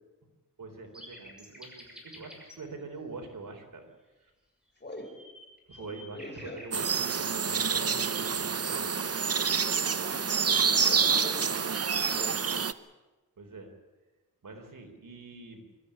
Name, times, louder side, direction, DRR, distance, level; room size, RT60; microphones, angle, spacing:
voice 1, 0.6-3.9 4.2-4.3 5.7-8.8 13.4-13.7 14.4-15.6, right 3 dB, 75° right, 4 dB, 3.9 m, -44 dB
sound 1, 0.9-2.6 4.8-7.2, equal, ahead, 6.3 m, -50 dB
voice 2, 4.8-5.2 5.7-6.6 9.9-10.4 10.7-11.7 12.0-12.4, left 1 dB, 30° left, 3 dB, 5.1 m, -43 dB
sound 2, 6.7-12.7, right 6 dB, 45° right, 0.8 m, -27 dB
24.5 x 13.5 x 9.9 m, 1.2 s
wide cardioid pair, 85°, 33 cm